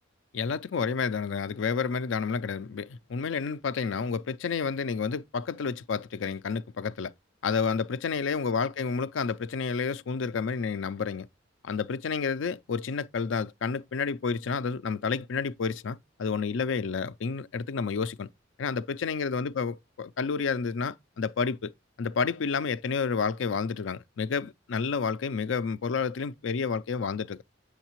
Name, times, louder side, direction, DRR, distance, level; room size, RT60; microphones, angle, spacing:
voice 1, 0.3-7.1 7.4-11.3 11.6-18.3 18.6-21.7 22.0-27.4, left 5 dB, 80° left, 0.4 m, -30 dB
8.0 x 6.5 x 3.0 m
head